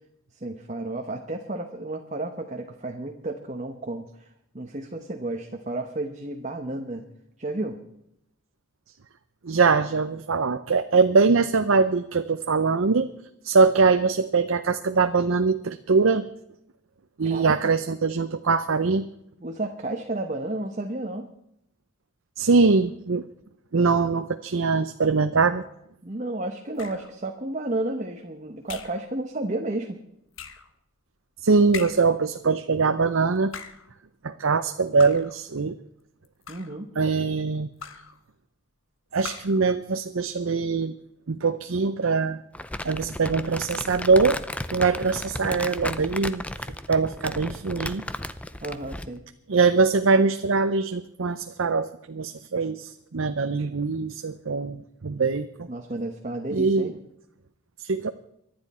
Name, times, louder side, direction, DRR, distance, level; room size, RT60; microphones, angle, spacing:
voice 1, 0.3-7.0 7.4-7.8 17.2-17.5 19.4-21.3 26.0-30.0 36.5-36.9 48.6-49.2 55.7-56.9, right 2 dB, 35° right, 3 dB, 1.1 m, -32 dB
voice 2, 9.4-13.1 13.4-16.3 17.2-19.1 22.4-23.2 23.7-25.6 31.4-33.5 34.2-35.8 37.0-37.7 39.1-40.9 41.3-42.4 42.8-44.4 44.7-48.0 49.5-55.7 56.5-56.9 57.8-58.1, right 4 dB, 70° right, 9 dB, 0.6 m, -22 dB
sound 1, 26.8-27.2 28.7-29.1 30.3-30.7 31.7-32.2 33.4-33.9 35.0-35.4 36.2-36.8 37.8-38.2 39.2-39.7, left 6 dB, 70° left, 1.3 m, -40 dB
Crumpling crinkling, 42.5-49.2, left 1 dB, 5° left, 0.4 m, -34 dB
24.0 x 10.5 x 4.3 m, 0.78 s
head